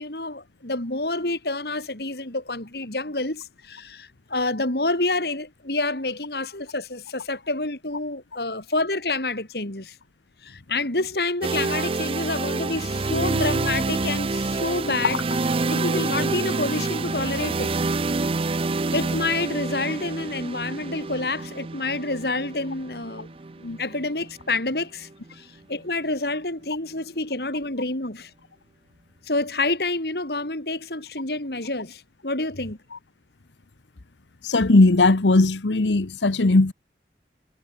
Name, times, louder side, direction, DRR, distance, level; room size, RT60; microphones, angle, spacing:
voice 1, 0.0-9.9 10.4-15.2 15.6-17.7 18.9-23.3 23.8-28.3 29.3-32.8, left 2 dB, 60° left, 3.8 m, -28 dB
sound 1, 11.4-25.3, right 3 dB, 30° right, 0.5 m, -27 dB
voice 2, 34.4-36.7, left 2 dB, 90° left, 1.0 m, -18 dB
head